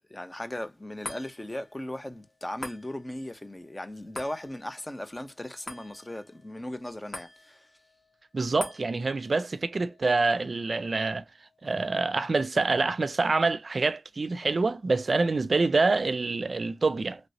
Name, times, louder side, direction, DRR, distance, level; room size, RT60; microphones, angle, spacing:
voice 1, 0.1-7.6, left 1 dB, 25° left, 0.7 m, -37 dB
sound 1, 1.0-13.6 14.1-14.2, left 2 dB, 55° left, 1.5 m, -47 dB
voice 2, 8.3-11.2 11.6-17.2, right 3 dB, 65° right, 0.4 m, -26 dB
3.2 x 3.0 x 2.6 m
wide cardioid pair, 60°, 0 cm